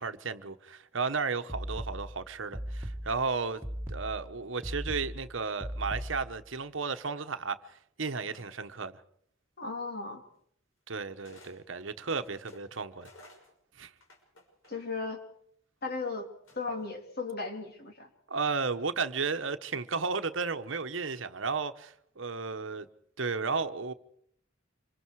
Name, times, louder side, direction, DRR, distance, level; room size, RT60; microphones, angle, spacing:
voice 1, 0.0-3.6 3.9-9.0 10.9-13.1 13.8-13.9 18.3-22.9 23.2-23.9, right 4 dB, 70° right, 1.1 m, -34 dB
sound 1, 1.5-6.5, equal, 10° right, 2.0 m, -38 dB
sound 2, 8.3-8.8 9.9-10.0 11.2-11.6 11.9-15.1 16.5-16.9, left 1 dB, 80° left, 5.9 m, -56 dB
voice 2, 9.6-10.2 14.7-15.2 15.8-16.3 16.5-18.1, left 3 dB, 50° left, 3.6 m, -36 dB
27.0 x 24.0 x 4.8 m
head